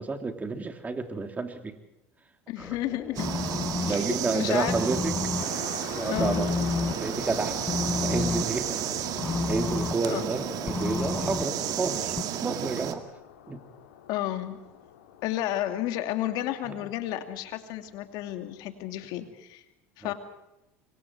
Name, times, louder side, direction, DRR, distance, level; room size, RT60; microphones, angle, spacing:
voice 1, 0.0-1.8 2.6-2.7 3.9-5.1 5.9-6.5 6.9-7.6 8.0-8.8 9.5-12.1 12.4-13.0 13.5-13.6 16.6-16.7 20.0-20.1, right 3 dB, 20° right, 6 dB, 3.2 m, -30 dB
voice 2, 2.5-3.3 3.8-4.8 6.1-6.4 10.0-10.2 14.1-14.7 15.2-19.6 20.0-20.1, left 13 dB, 65° left, 7 dB, 2.5 m, -32 dB
sound 1, 2.6-12.2, left 4 dB, 20° left, 0.7 m, -32 dB
sound 2, 3.1-12.9, right 11 dB, 55° right, 2.1 m, -32 dB
sound 3, 5.4-19.3, left 10 dB, 85° left, 2.9 m, -47 dB
26.0 x 23.5 x 4.8 m, 0.93 s
hypercardioid pair, 85°, 7 cm